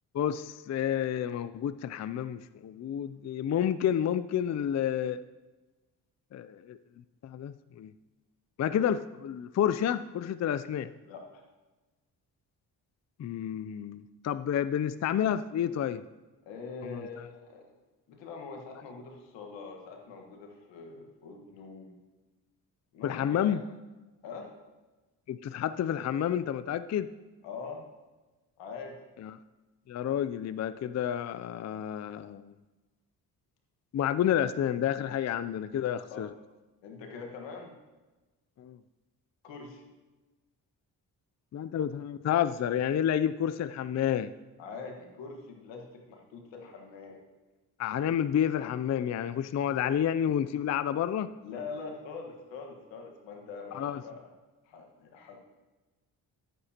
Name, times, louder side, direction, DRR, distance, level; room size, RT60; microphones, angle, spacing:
voice 1, 0.1-5.2 6.3-6.8 7.2-7.9 8.6-10.9 13.2-16.0 16.8-17.1 23.0-23.6 25.3-27.1 29.2-29.3 29.9-32.5 33.9-36.3 38.6-38.8 41.5-44.3 47.8-51.3 53.7-54.0, left 9 dB, 40° left, 14 dB, 0.4 m, -30 dB
voice 2, 11.0-11.4 16.4-17.7 18.1-21.9 22.9-23.6 24.2-24.5 27.4-27.8 28.6-29.0 36.1-36.3 36.8-37.7 39.4-39.9 44.6-47.2 49.7-49.8 51.4-54.3 54.6-55.4, left 4 dB, 90° left, 2 dB, 1.6 m, -43 dB
14.0 x 8.1 x 2.9 m, 1.2 s
supercardioid pair, 55°, 43 cm